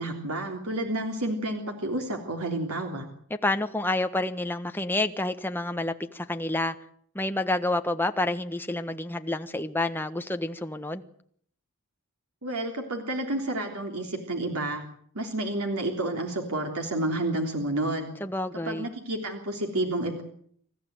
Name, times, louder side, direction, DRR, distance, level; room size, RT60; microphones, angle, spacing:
voice 1, 0.0-3.1 12.4-14.8 15.1-18.1 18.6-20.2, right 1 dB, 90° right, 3.4 m, -30 dB
voice 2, 3.4-6.7 7.1-11.0 18.2-18.9, left 2 dB, 10° left, 1.3 m, -29 dB
27.0 x 14.5 x 9.4 m
head